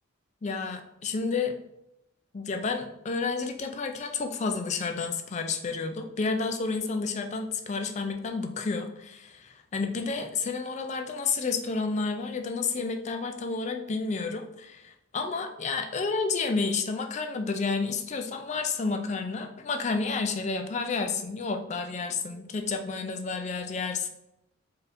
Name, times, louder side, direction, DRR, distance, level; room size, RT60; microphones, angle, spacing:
voice 1, 0.4-1.5 2.3-24.1, left 4 dB, 35° left, 5 dB, 0.4 m, -30 dB
4.4 x 3.4 x 2.6 m, 0.87 s
head